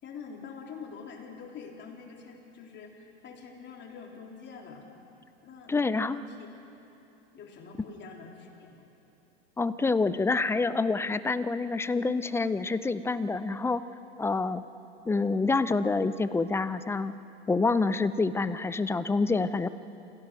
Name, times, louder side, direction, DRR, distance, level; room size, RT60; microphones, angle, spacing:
voice 1, 0.0-4.9 5.4-5.7 6.1-6.5 7.3-8.9, left 5 dB, 30° left, 1 dB, 3.5 m, -45 dB
voice 2, 5.7-6.2 9.6-13.8 14.2-14.6 15.1-17.1 17.5-19.7, left 3 dB, 5° left, 14 dB, 0.5 m, -27 dB
27.0 x 16.0 x 6.4 m, 2.9 s
hypercardioid pair, 110°, 34 cm